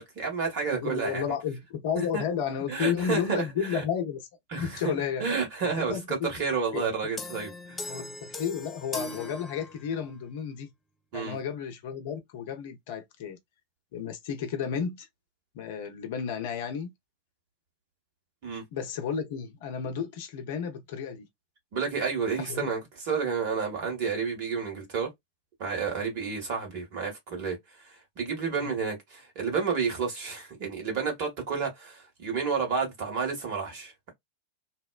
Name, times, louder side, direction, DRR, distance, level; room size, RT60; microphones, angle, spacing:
voice 1, 0.0-1.2 1.9-2.2 2.7-3.5 3.7-3.8 4.5-4.9 5.2-7.9 11.1-11.4 18.4-18.6 21.7-22.8 23.1-25.1 25.6-34.1, right 5 dB, 45° right, 1.4 m, -30 dB
voice 2, 0.7-4.3 4.6-5.2 5.6-6.3 6.7-6.9 7.9-10.7 11.1-13.4 13.9-15.1 15.5-16.9 18.7-21.3 22.4-22.7 28.5-28.7, left 7 dB, 50° left, 0.7 m, -32 dB
sound 1, 7.2-10.2, left 2 dB, 15° left, 0.4 m, -40 dB
2.7 x 2.1 x 2.2 m
figure-of-eight pair, 90°, 0 cm